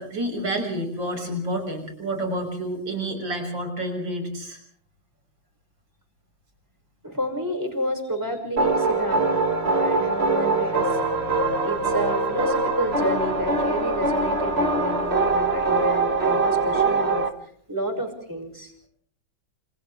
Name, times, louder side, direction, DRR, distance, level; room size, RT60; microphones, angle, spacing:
voice 1, 0.0-4.6, right 1 dB, 70° right, 5 dB, 6.7 m, -29 dB
voice 2, 7.0-11.1 11.6-17.2 17.7-18.7, equal, 10° right, 4 dB, 6.0 m, -30 dB
sound 1, 8.6-17.3, right 3 dB, 35° right, 1.8 m, -23 dB
28.5 x 28.0 x 3.5 m, 0.62 s
omnidirectional pair, 2.1 m